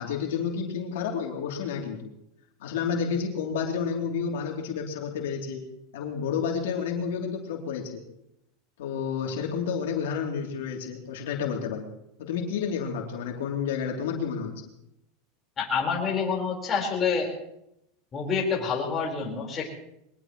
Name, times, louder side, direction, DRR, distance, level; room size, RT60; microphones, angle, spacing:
voice 1, 0.0-2.1 2.6-5.6 5.9-8.0 8.8-11.9 12.2-14.5, left 6 dB, 90° left, 0 dB, 3.1 m, -30 dB
voice 2, 15.6-17.3 18.1-19.7, left 5 dB, 25° left, -1 dB, 4.5 m, -27 dB
22.5 x 19.0 x 3.1 m, 0.82 s
supercardioid pair, 150°, 0 cm